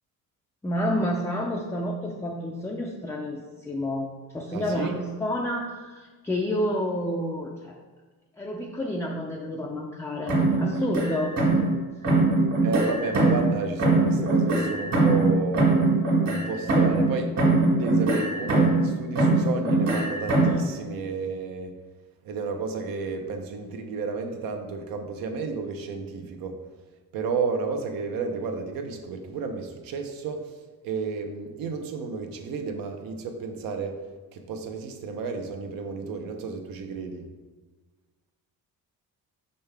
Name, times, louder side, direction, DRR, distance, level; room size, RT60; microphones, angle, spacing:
voice 1, 0.6-4.1 4.3-7.8 8.4-11.4, left 1 dB, 10° left, -1 dB, 0.3 m, -29 dB
voice 2, 4.5-5.0 12.6-15.8 16.3-17.3 17.7-21.7 22.2-26.6 27.1-34.0 34.3-37.2, right 4 dB, 80° right, 5 dB, 0.8 m, -32 dB
sound 1, 10.3-11.8 12.0-13.5 13.8-17.1 17.4-18.9 19.2-20.6, right 2 dB, 50° right, 1.7 m, -22 dB
5.5 x 5.4 x 3.4 m, 1.3 s
cardioid pair, 160°, 34 cm